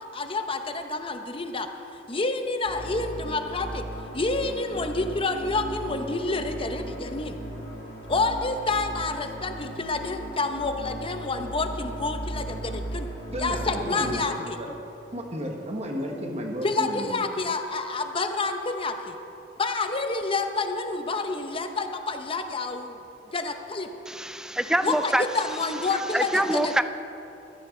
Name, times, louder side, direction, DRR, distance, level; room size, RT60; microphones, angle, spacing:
voice 1, 0.1-1.7 2.1-3.8 4.1-7.4 8.1-13.1 13.4-14.6 16.6-19.2 19.6-23.0 23.3-23.9 24.8-26.7, left 3 dB, 30° left, 6 dB, 0.8 m, -28 dB
sound 1, 2.6-14.2, right 1 dB, 85° left, 2.5 m, -37 dB
voice 2, 13.3-14.2 14.6-14.7 15.1-17.2, equal, 35° right, 1 dB, 1.5 m, -33 dB
voice 3, 24.1-26.8, right 1 dB, 5° right, 11 dB, 0.4 m, -26 dB
15.0 x 12.5 x 3.9 m, 2.8 s
head